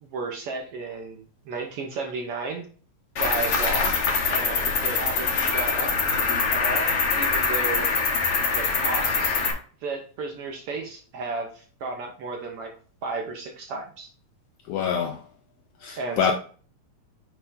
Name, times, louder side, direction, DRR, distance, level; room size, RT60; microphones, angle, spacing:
voice 1, 0.0-2.7 3.2-4.0 4.3-5.9 6.5-7.9 8.5-9.4 9.8-12.7 13.0-14.1 16.0-16.3, right 4 dB, 65° right, 1.5 m, -33 dB
Cricket, 3.2-9.5, left 4 dB, 55° left, 2.0 m, -24 dB
voice 2, 14.7-15.2 15.8-16.3, left 7 dB, 80° left, 1.5 m, -25 dB
8.5 x 3.3 x 3.6 m
omnidirectional pair, 3.5 m